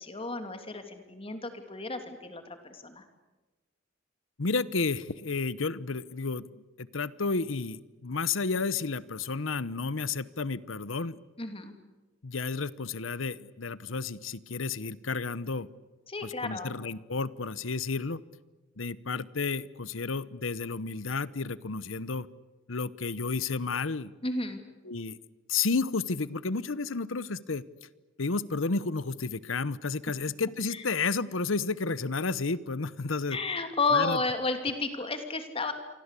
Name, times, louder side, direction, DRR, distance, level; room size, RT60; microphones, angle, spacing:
voice 1, 0.0-3.0 11.4-11.7 16.1-16.7 24.2-24.6 33.3-35.7, left 3 dB, 30° left, 7 dB, 2.9 m, -32 dB
voice 2, 4.4-11.2 12.2-15.7 16.2-18.2 18.8-22.3 22.7-24.1 24.9-25.2 25.5-27.6 28.2-33.4 33.9-34.2, left 4 dB, 85° left, 18 dB, 1.0 m, -31 dB
28.0 x 24.5 x 8.4 m, 1.2 s
head